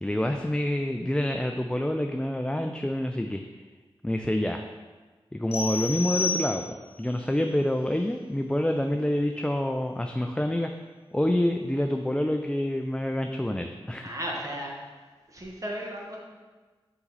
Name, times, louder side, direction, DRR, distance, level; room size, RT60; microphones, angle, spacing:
voice 1, 0.0-3.4 4.0-4.7 5.3-10.7 11.1-14.1, left 1 dB, 10° left, 4 dB, 0.4 m, -27 dB
sound 1, 5.5-7.0, left 3 dB, 75° left, 1.1 m, -31 dB
voice 2, 14.0-14.7 15.3-16.2, equal, 35° right, -2 dB, 1.6 m, -34 dB
5.6 x 5.2 x 4.1 m, 1.3 s
cardioid pair, 50°, 10 cm